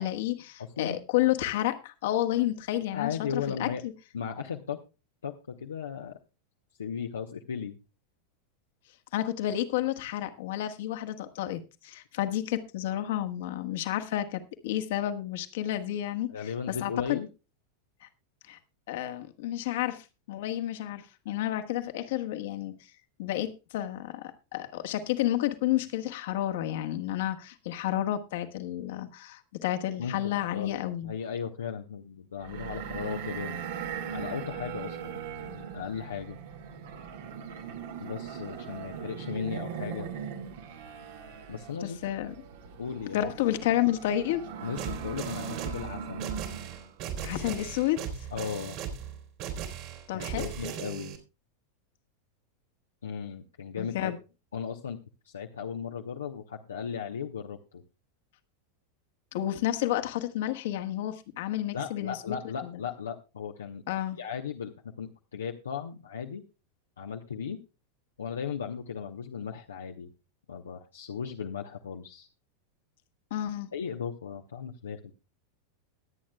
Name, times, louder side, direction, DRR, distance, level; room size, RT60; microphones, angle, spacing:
voice 1, 0.0-3.7 9.1-17.2 18.0-18.1 18.5-18.6 18.9-22.7 23.2-31.1 41.8-42.3 43.1-44.4 47.2-48.0 50.1-50.5 53.8-54.2 59.3-62.3 62.6-62.7 63.9-64.2 73.3-73.7, left 13 dB, 65° left, 7 dB, 1.4 m, -31 dB
voice 2, 2.9-3.8 4.1-4.8 5.2-6.2 6.8-7.8 16.3-17.3 30.0-30.7 31.0-33.7 34.1-36.4 38.0-40.1 41.5-42.0 42.8-43.3 44.6-46.3 48.3-48.8 50.1-51.1 53.0-54.1 54.5-55.0 55.2-57.8 61.7-63.8 64.2-66.4 67.0-67.6 68.2-70.1 70.5-72.3 73.7-75.1, left 7 dB, 80° left, 2 dB, 0.9 m, -36 dB
sound 1, 32.4-46.9, right 7 dB, 65° right, 1.7 m, -40 dB
sound 2, 44.8-51.2, right 8 dB, 50° right, 3.1 m, -38 dB
22.0 x 8.6 x 2.3 m, 0.29 s
figure-of-eight pair, 90°, 0 cm